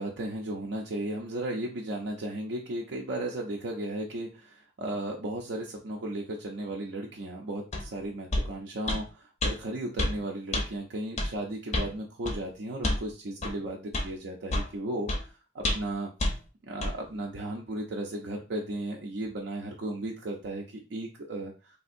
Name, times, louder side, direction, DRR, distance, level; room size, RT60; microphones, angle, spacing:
voice 1, 0.0-16.1 16.6-21.8, right 1 dB, 60° right, -1 dB, 0.4 m, -35 dB
sound 1, 7.7-7.9 8.3-8.5 8.9-9.0 9.4-9.5 10.0-10.2 10.5-10.7 11.2-11.3 11.7-11.9 12.3-12.4 12.8-13.0 13.4-13.5 13.9-14.1 14.5-14.7 15.1-15.2 15.6-15.9 16.2-16.3 16.8-16.9, left 1 dB, 35° left, 0.5 m, -28 dB
3.4 x 2.5 x 2.5 m, 0.33 s
head